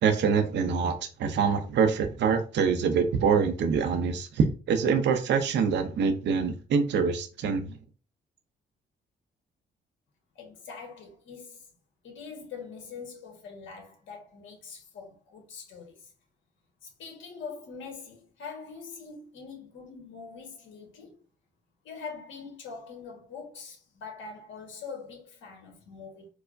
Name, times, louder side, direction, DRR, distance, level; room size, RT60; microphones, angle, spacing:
voice 1, 0.0-7.8, right 6 dB, 65° right, 0.5 m, -25 dB
voice 2, 10.3-11.7 12.0-16.1 16.8-21.2 21.8-26.3, left 5 dB, 75° left, 1.2 m, -43 dB
4.5 x 2.1 x 2.5 m
cardioid pair, 90°, 20 cm